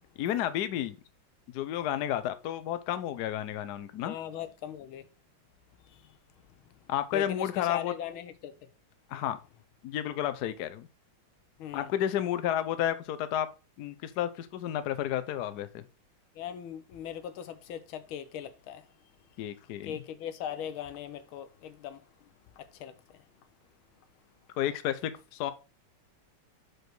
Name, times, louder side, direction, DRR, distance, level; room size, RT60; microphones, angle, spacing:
voice 1, 0.2-1.0 1.5-4.2 6.9-7.9 9.1-9.4 9.8-10.9 11.7-13.5 13.8-15.8 19.4-20.0 24.6-25.5, left 11 dB, 65° left, 1.1 m, -31 dB
voice 2, 4.0-5.1 5.8-6.1 7.1-8.5 11.6-11.9 16.3-18.9 19.8-22.1 22.6-23.0, left 9 dB, 80° left, 1.6 m, -39 dB
6.3 x 5.1 x 4.6 m
omnidirectional pair, 2.3 m